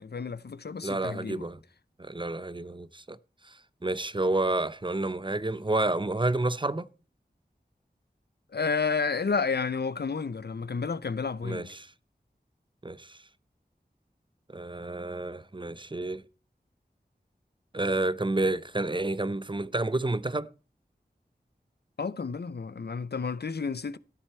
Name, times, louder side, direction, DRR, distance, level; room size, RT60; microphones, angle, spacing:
voice 1, 0.0-1.4 8.5-11.7 22.0-24.0, left 5 dB, 70° left, 0.6 m, -31 dB
voice 2, 0.8-1.6 2.0-3.2 3.4-6.9 11.4-11.9 12.8-13.2 14.5-16.2 17.7-20.5, right 2 dB, 30° right, 0.6 m, -30 dB
14.0 x 7.5 x 4.4 m
wide cardioid pair, 45°, 18 cm